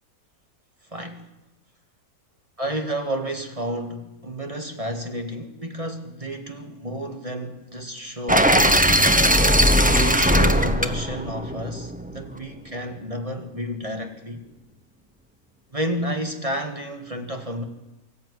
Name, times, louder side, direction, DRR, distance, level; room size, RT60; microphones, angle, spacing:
voice 1, 0.9-1.3 2.6-8.9 10.0-14.4 15.7-17.6, right 1 dB, 20° right, 2.0 m, -31 dB
sound 1, 8.3-12.3, equal, 5° right, 0.9 m, -19 dB
23.5 x 14.0 x 9.8 m
omnidirectional pair, 1.6 m